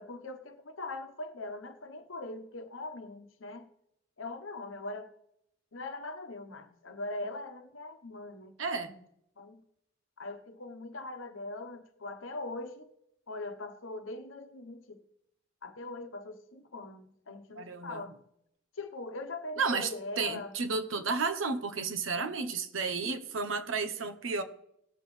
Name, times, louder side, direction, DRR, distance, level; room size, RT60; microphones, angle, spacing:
voice 1, 0.0-3.7 4.2-5.1 5.7-9.0 9.4-9.6 10.2-12.9 13.3-15.0 15.6-18.1 18.8-20.5, left 2 dB, 80° left, 1.0 m, -41 dB
voice 2, 8.6-9.0 17.6-18.0 19.6-19.9 20.2-24.4, right 4 dB, 80° right, 0.9 m, -32 dB
18.0 x 7.1 x 3.2 m
head